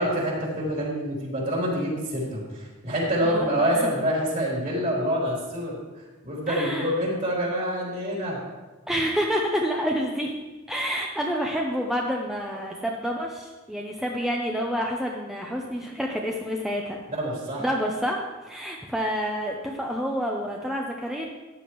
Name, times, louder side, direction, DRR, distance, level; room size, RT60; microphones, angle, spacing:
voice 1, 0.0-5.8 6.2-8.4 17.1-17.6, equal, 40° right, -4 dB, 3.6 m, -26 dB
voice 2, 3.2-3.9 6.5-6.9 8.9-10.4 10.7-17.0 17.6-21.3, equal, ahead, -1 dB, 0.7 m, -28 dB
14.0 x 9.8 x 3.1 m, 1.2 s
head